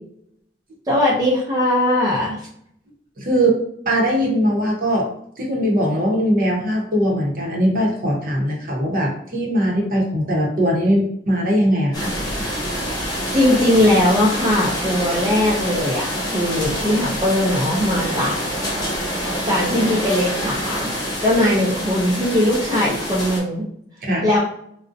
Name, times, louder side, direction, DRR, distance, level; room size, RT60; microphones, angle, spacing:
voice 1, 0.9-2.5 13.3-18.4 19.4-20.9 21.2-23.6 24.2-24.4, left 1 dB, 20° right, -5 dB, 0.4 m, -19 dB
voice 2, 3.2-3.6 3.9-5.1 5.4-12.1 24.0-24.3, equal, 50° right, -2 dB, 0.7 m, -20 dB
sound 1, 11.9-23.4, equal, 25° left, 0.6 m, -26 dB
2.5 x 2.0 x 2.5 m, 0.68 s
head